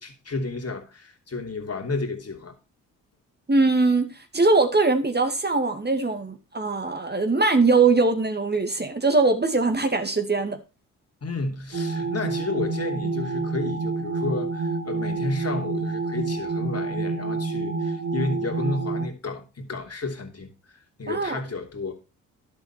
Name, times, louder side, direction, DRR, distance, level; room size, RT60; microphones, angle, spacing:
voice 1, 0.0-2.5 11.2-20.5 21.0-21.9, left 3 dB, 40° left, 3.1 m, -31 dB
voice 2, 3.5-4.1 4.3-10.6 21.1-21.4, right 3 dB, 25° right, 2.2 m, -21 dB
sound 1, 11.7-19.0, right 3 dB, 50° right, 3.9 m, -28 dB
11.5 x 6.8 x 4.3 m
hypercardioid pair, 45°, 39 cm